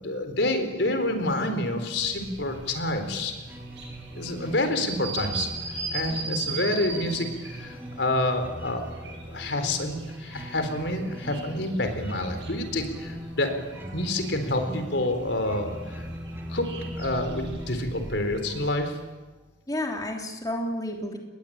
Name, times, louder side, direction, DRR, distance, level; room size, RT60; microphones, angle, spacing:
voice 1, 0.0-3.3 4.1-5.5 5.9-13.5 13.9-16.1 16.5-16.7 17.0-19.0, left 1 dB, 80° left, 7 dB, 4.1 m, -28 dB
sound 1, 1.9-18.7, right 4 dB, 80° right, 7.9 m, -39 dB
sound 2, 3.5-19.0, equal, 15° right, 3.6 m, -41 dB
voice 2, 6.1-6.4 19.7-21.2, left 1 dB, 20° left, 1 dB, 3.2 m, -31 dB
28.0 x 21.0 x 8.9 m, 1.2 s
head